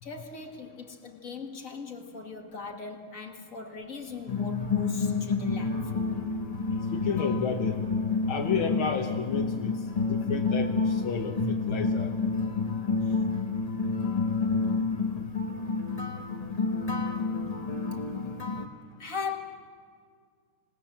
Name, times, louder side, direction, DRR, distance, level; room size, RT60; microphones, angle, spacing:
voice 1, 0.0-6.0 6.7-6.8 19.0-19.4, left 5 dB, 40° left, 4 dB, 2.2 m, -39 dB
sound 1, 4.3-18.6, left 4 dB, 20° left, 1.2 m, -29 dB
voice 2, 6.9-7.8 8.3-9.8 10.1-12.1, left 6 dB, 85° left, 2 dB, 2.1 m, -31 dB
26.0 x 19.5 x 7.3 m, 2.1 s
omnidirectional pair, 2.2 m